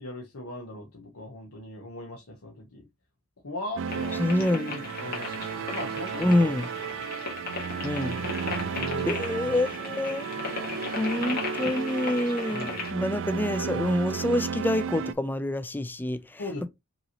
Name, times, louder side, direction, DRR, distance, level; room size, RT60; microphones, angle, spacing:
voice 1, 0.0-2.9 3.4-4.2 5.0-6.4 6.9-7.0 8.4-9.7 12.5-12.9 16.4-16.7, left 1 dB, 75° left, 1.0 m, -39 dB
sound 1, 3.8-15.1, right 6 dB, 60° right, 0.4 m, -33 dB
sound 2, 3.9-12.9, left 4 dB, 45° left, 1.8 m, -37 dB
voice 2, 4.2-4.9 6.2-6.7 7.8-8.3 9.1-10.2 11.0-16.4, left 1 dB, 10° left, 0.3 m, -27 dB
5.3 x 3.0 x 2.9 m
head